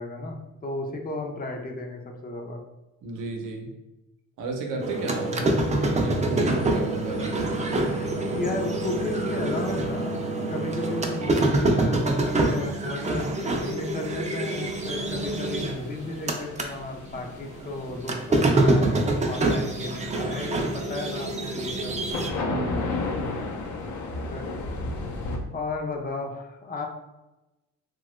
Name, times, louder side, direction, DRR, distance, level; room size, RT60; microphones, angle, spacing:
voice 1, 0.0-2.6 5.2-5.5 7.8-8.1 8.4-10.2 10.5-18.9 19.2-22.0 24.3-24.5 25.5-26.9, left 2 dB, 30° left, 3 dB, 0.5 m, -34 dB
voice 2, 3.0-3.7 4.4-7.4 22.5-23.0, right 3 dB, 90° right, 2 dB, 0.7 m, -33 dB
sound 1, 4.8-16.7 17.1-22.3, right 2 dB, 25° right, 0.4 m, -26 dB
sound 2, 14.5-25.4, left 3 dB, 75° left, 0.6 m, -34 dB
2.8 x 2.3 x 3.0 m, 1.0 s
cardioid pair, 90°, 30 cm